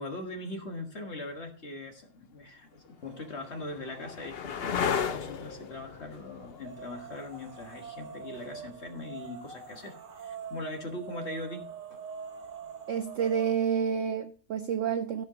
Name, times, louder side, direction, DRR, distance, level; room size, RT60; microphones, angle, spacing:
voice 1, 0.0-12.0, left 2 dB, 40° left, 1.7 m, -41 dB
sound 1, 1.6-1.7 2.5-10.1 12.4-13.0, left 7 dB, 60° left, 0.6 m, -37 dB
sound 2, 3.0-3.6 4.0-5.8 6.5-13.7, right 6 dB, 50° right, 1.5 m, -45 dB
voice 2, 12.9-15.2, right 7 dB, 65° right, 0.8 m, -29 dB
13.5 x 5.3 x 5.0 m
omnidirectional pair, 1.8 m